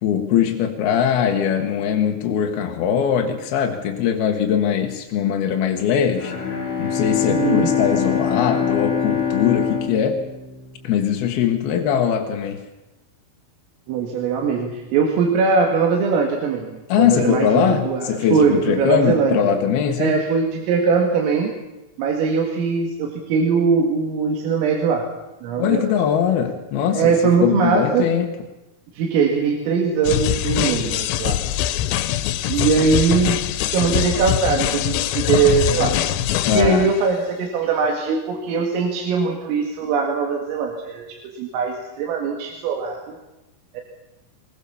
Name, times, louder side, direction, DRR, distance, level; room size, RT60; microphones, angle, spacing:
voice 1, 0.0-6.3 6.8-10.2 10.8-12.6 16.9-20.2 25.6-27.1 27.4-28.3 36.4-36.9, left 8 dB, 65° left, 3 dB, 2.7 m, -21 dB
Bowed string instrument, 6.1-11.1, left 7 dB, 30° left, 3.8 m, -24 dB
voice 2, 7.3-7.7 13.9-19.5 20.0-21.5 22.0-25.1 25.4-25.9 26.9-28.1 28.9-31.4 32.5-36.0 36.5-43.2 43.7-43.8, right 5 dB, 80° right, 1 dB, 4.7 m, -21 dB
sound 1, 30.0-36.9, left 12 dB, 85° left, 3.6 m, -23 dB
22.5 x 21.0 x 7.1 m, 0.99 s
omnidirectional pair, 5.9 m